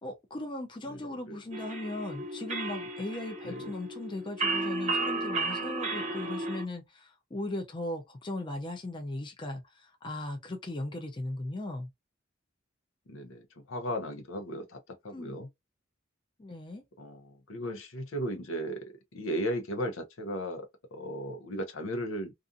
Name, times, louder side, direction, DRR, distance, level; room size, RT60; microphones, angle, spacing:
voice 1, 0.0-11.9 15.1-15.4 16.4-16.8, left 1 dB, 25° left, 0.4 m, -38 dB
voice 2, 0.9-1.4 3.4-3.7 13.1-15.5 17.0-18.8 19.1-22.3, equal, 80° left, 0.6 m, -36 dB
sound 1, 1.5-6.6, right 2 dB, 35° right, 0.7 m, -33 dB
2.4 x 2.4 x 2.5 m
head